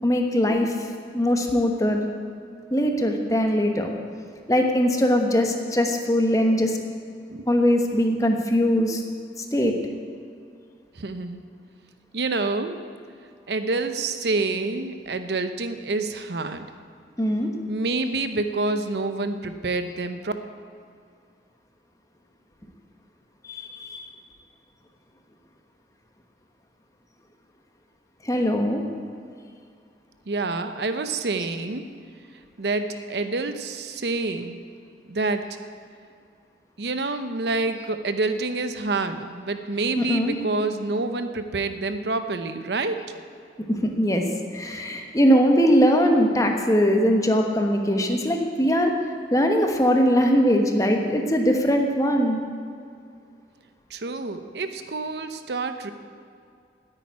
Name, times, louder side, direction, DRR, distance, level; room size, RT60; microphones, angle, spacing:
voice 1, 0.0-0.7 1.1-2.0 2.7-3.9 4.5-6.8 7.5-9.0 9.4-9.7 17.2-17.5 23.4-24.1 28.2-28.8 31.6-31.7 40.0-40.4 43.7-44.2 44.5-48.9 49.3-52.4, equal, 20° left, 3 dB, 1.1 m, -21 dB
voice 2, 11.0-11.4 12.1-12.8 13.5-16.7 17.7-20.3 30.3-31.9 32.6-34.6 35.1-35.4 36.8-43.0 53.9-55.9, right 3 dB, 75° right, 9 dB, 0.8 m, -27 dB
9.9 x 9.0 x 9.6 m, 2.3 s
head